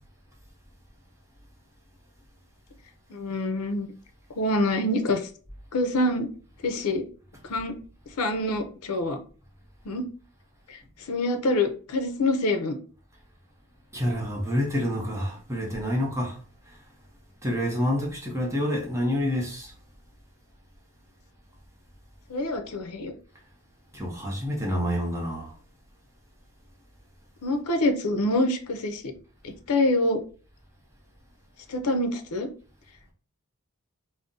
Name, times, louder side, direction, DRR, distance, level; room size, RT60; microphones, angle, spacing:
voice 1, 3.1-3.9 4.4-5.3 5.7-6.3 6.6-7.0 7.4-7.8 8.2-9.2 9.8-10.1 10.7-10.8 11.1-12.8 22.3-23.1 27.4-29.1 29.7-30.2 31.7-32.5, left 1 dB, 75° left, 0.5 m, -26 dB
voice 2, 13.9-16.4 17.4-19.7 23.9-25.5, equal, 15° right, 0.6 m, -28 dB
2.6 x 2.0 x 3.6 m
head